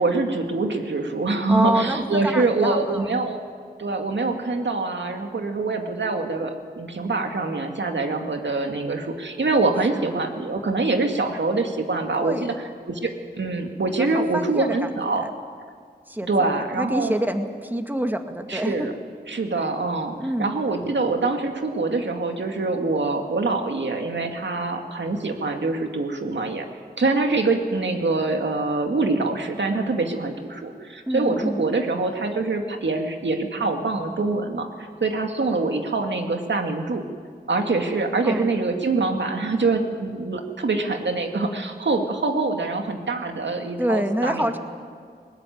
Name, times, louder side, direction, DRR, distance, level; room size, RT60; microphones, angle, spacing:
voice 1, 0.0-3.4 3.8-12.5 12.9-15.3 16.3-17.1 18.5-18.9 19.3-26.7 27.0-37.0 37.5-44.5, right 3 dB, 80° right, 4 dB, 2.1 m, -24 dB
voice 2, 1.5-3.1 9.9-10.0 12.1-12.5 14.0-15.3 16.1-16.5 16.7-18.9 20.2-20.5 31.1-31.6 38.2-38.5 43.8-44.6, equal, 10° right, 5 dB, 2.0 m, -26 dB
20.5 x 19.5 x 9.4 m, 2.1 s
wide cardioid pair, 65°, 18 cm